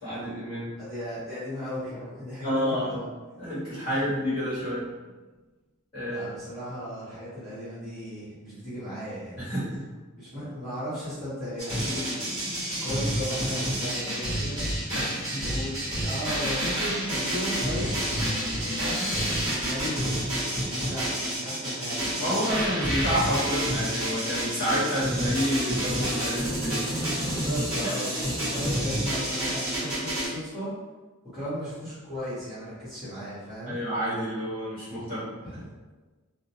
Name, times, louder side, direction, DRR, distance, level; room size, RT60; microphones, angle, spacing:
voice 1, 0.0-0.8 2.4-3.0 3.4-4.9 5.9-6.2 9.4-9.9 14.9-15.4 22.2-27.4 27.8-27.9 33.7-35.3, equal, 25° left, -12 dB, 1.2 m, -29 dB
voice 2, 0.8-3.1 3.8-4.0 6.1-9.5 10.2-12.4 12.8-14.6 15.4-18.1 18.6-20.3 20.8-22.4 27.2-30.7 31.3-33.8 35.4-35.7, equal, ahead, -15 dB, 1.0 m, -36 dB
sound 1, 11.6-30.3, equal, 20° right, 1.2 m, -29 dB
2.4 x 2.1 x 2.7 m, 1.3 s
head